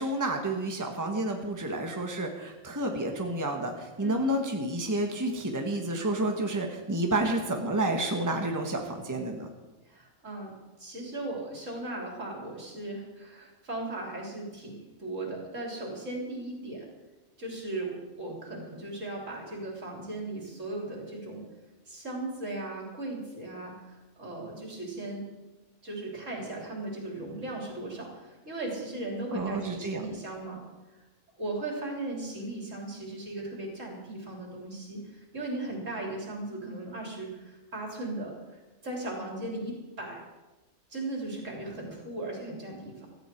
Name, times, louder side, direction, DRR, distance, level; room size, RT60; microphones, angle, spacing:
voice 1, 0.0-9.5 29.3-30.0, right 1 dB, 15° right, 2 dB, 1.5 m, -30 dB
voice 2, 9.9-10.5 10.8-16.9 17.4-21.5 21.9-25.2 25.8-30.6 30.9-31.0 31.4-40.2 40.9-43.1, right 2 dB, 70° right, -1 dB, 4.2 m, -37 dB
17.0 x 14.0 x 4.6 m, 1.1 s
omnidirectional pair, 1.4 m